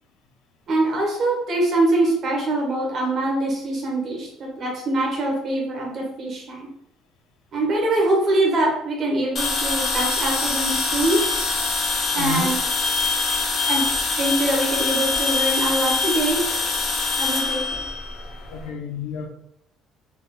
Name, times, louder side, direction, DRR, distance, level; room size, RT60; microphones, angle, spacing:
voice 1, 0.7-6.7 7.5-11.2 12.1-12.6 13.7-13.9 14.2-16.4 17.2-17.6, right 2 dB, 40° right, -1 dB, 1.1 m, -23 dB
sound 1, 9.4-18.6, left 3 dB, 40° left, 0.7 m, -24 dB
voice 2, 12.1-12.5 18.5-19.3, left 3 dB, 90° left, 4 dB, 0.6 m, -29 dB
3.9 x 3.5 x 2.2 m, 0.79 s
cardioid pair, 160°, 0 cm